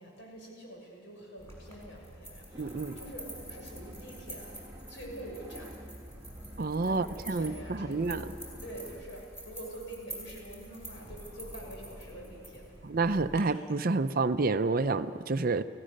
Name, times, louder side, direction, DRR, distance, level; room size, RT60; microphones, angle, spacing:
voice 1, 0.0-4.5 4.9-5.7 6.8-8.3 8.6-12.6, right 1 dB, 60° left, -1 dB, 6.9 m, -46 dB
sound 1, 1.4-13.4, right 1 dB, 15° left, 5.6 m, -47 dB
sound 2, 2.5-9.0, equal, 15° right, 1.5 m, -48 dB
voice 2, 2.6-3.0 6.6-8.2 12.8-15.6, right 3 dB, 45° right, 11 dB, 0.6 m, -29 dB
29.5 x 17.0 x 6.6 m, 2.3 s
head